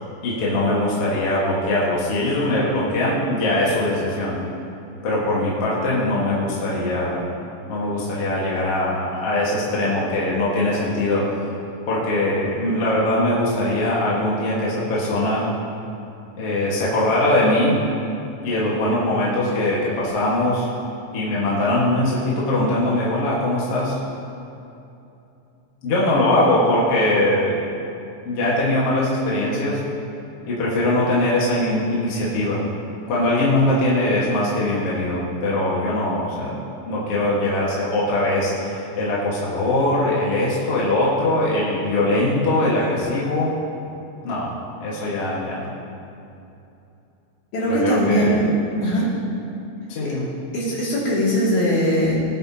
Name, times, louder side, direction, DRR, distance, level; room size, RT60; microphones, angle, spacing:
voice 1, 0.2-4.4 5.0-7.2 7.7-11.3 11.9-15.5 16.4-17.8 18.4-20.7 21.1-24.0 25.8-27.6 28.2-29.8 30.5-32.6 33.1-36.5 36.9-43.6 44.2-44.5 44.8-45.6 47.7-48.4 49.9-50.3, left 1 dB, 55° left, -6 dB, 2.5 m, -21 dB
voice 2, 47.5-48.5 48.8-49.1 50.0-50.1 50.5-52.2, equal, 75° left, -7 dB, 3.9 m, -20 dB
19.0 x 8.9 x 2.9 m, 2.8 s
omnidirectional pair, 3.4 m